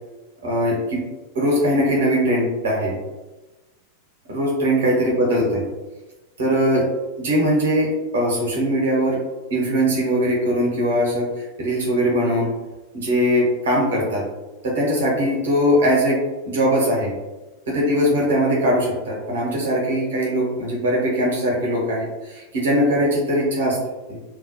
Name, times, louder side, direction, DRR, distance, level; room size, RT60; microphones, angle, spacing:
voice 1, 0.4-1.0 1.3-3.0 4.3-5.6 6.4-6.9 7.2-9.2 9.5-11.3 11.6-12.5 12.9-14.2 14.6-16.2 16.5-17.1 17.7-23.8 24.1-24.2, equal, 60° right, -3 dB, 0.8 m, -20 dB
2.2 x 2.0 x 2.8 m, 1.1 s
figure-of-eight pair, 90°, 0 cm